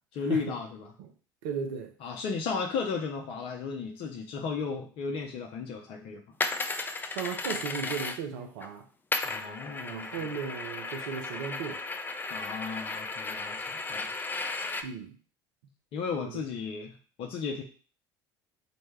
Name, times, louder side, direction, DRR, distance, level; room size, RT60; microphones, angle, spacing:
voice 1, 0.1-0.9 2.0-6.2 9.2-10.3 12.3-14.1 15.9-17.6, left 5 dB, 55° left, 0.6 m, -35 dB
voice 2, 1.4-1.9 7.1-8.9 9.8-11.8 14.8-15.2 16.2-16.3, right 6 dB, 70° right, 0.7 m, -36 dB
sound 1, 6.4-8.7 9.1-14.8, left 3 dB, 15° left, 0.4 m, -35 dB
4.3 x 2.2 x 3.2 m
hypercardioid pair, 65°, 11 cm